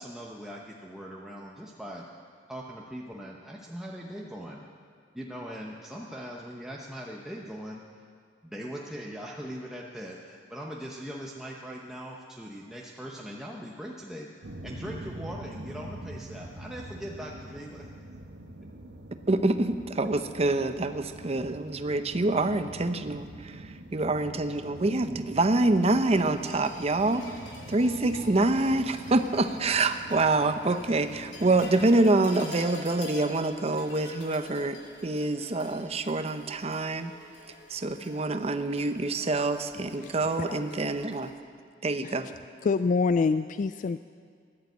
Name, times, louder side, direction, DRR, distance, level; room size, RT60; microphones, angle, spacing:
voice 1, 0.0-2.1 2.5-4.6 5.1-7.8 8.4-14.3 14.6-17.9, equal, 5° right, -3 dB, 0.9 m, -40 dB
sound 1, 14.4-32.1, right 1 dB, 85° right, 1.2 m, -45 dB
voice 2, 19.3-27.3 27.7-37.1 37.7-41.3 41.8-42.3, right 2 dB, 35° right, 9 dB, 0.7 m, -26 dB
sound 2, 25.6-41.3, left 2 dB, 90° left, 2.8 m, -47 dB
voice 3, 42.6-44.0, left 4 dB, 45° left, 12 dB, 0.3 m, -26 dB
15.0 x 11.0 x 8.0 m, 2.1 s
head